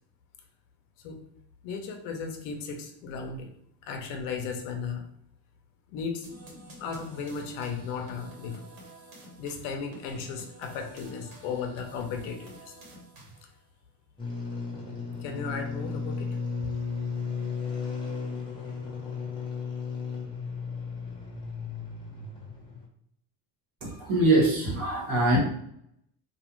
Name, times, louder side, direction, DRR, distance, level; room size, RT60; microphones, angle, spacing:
voice 1, 1.6-3.5 3.8-5.1 5.9-6.3 6.8-8.7 9.4-12.7 15.2-16.4, left 5 dB, 80° left, 3 dB, 0.6 m, -35 dB
sound 1, 6.2-13.6, right 1 dB, 70° right, 1.2 m, -49 dB
sound 2, 14.2-22.9, left 5 dB, 10° left, 0.5 m, -34 dB
voice 2, 23.8-25.4, right 2 dB, 40° right, -4 dB, 1.1 m, -23 dB
2.4 x 2.3 x 3.0 m, 0.72 s
cardioid pair, 140°, 48 cm